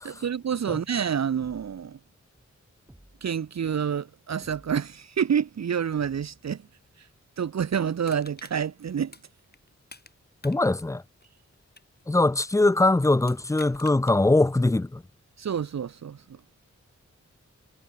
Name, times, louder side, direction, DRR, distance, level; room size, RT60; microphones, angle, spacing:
voice 1, 0.0-2.0 3.2-6.6 7.0-7.1 7.4-9.1 15.4-16.2, right 8 dB, 65° right, 0.8 m, -28 dB
sound 1, 2.9-3.5 4.4-5.0 6.0-6.6, right 1 dB, 10° right, 7.4 m, -55 dB
Crushing, 8.0-10.1 10.4-12.6 13.2-14.2 14.6-14.7, left 3 dB, 35° left, 6.0 m, -49 dB
voice 2, 10.4-11.0 12.1-15.0, left 2 dB, 10° left, 0.6 m, -22 dB
wide cardioid pair, 95°, 29 cm